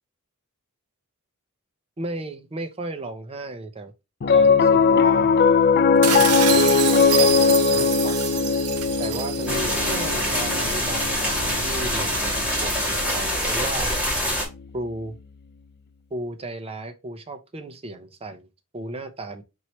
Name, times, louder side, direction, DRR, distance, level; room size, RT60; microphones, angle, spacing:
voice 1, 2.0-3.9 4.3-5.3 6.1-8.2 9.0-13.9 14.7-15.2 16.1-18.5 18.7-19.4, right 2 dB, 25° right, 0.6 m, -35 dB
Piano, 4.2-14.7, left 5 dB, 45° left, 0.4 m, -21 dB
sound 1, 6.0-10.7, right 10 dB, 85° right, 0.5 m, -27 dB
sound 2, 9.5-14.5, equal, 5° right, 1.5 m, -25 dB
4.5 x 2.9 x 3.1 m
head